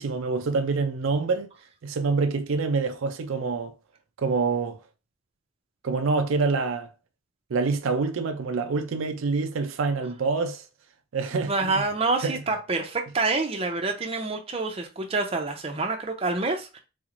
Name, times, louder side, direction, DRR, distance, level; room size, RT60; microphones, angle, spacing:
voice 1, 0.0-1.5 1.8-3.7 4.2-4.8 5.8-6.9 7.5-10.6 11.1-11.8 12.2-12.4, right 4 dB, 85° right, 0.4 m, -26 dB
voice 2, 11.3-16.8, right 3 dB, 30° right, 0.6 m, -27 dB
4.0 x 3.0 x 2.5 m
head